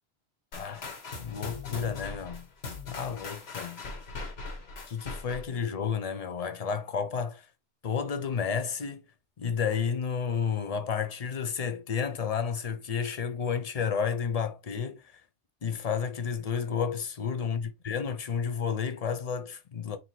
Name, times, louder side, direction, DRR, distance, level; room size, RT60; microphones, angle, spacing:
sound 1, 0.5-5.6, left 4 dB, 65° left, 1.3 m, -40 dB
voice 1, 0.5-0.9 1.2-2.5 2.9-3.8 4.9-7.5 7.8-9.0 9.4-15.2 15.6-20.0, left 6 dB, 40° left, 0.6 m, -31 dB
3.9 x 2.9 x 4.3 m
omnidirectional pair, 1.2 m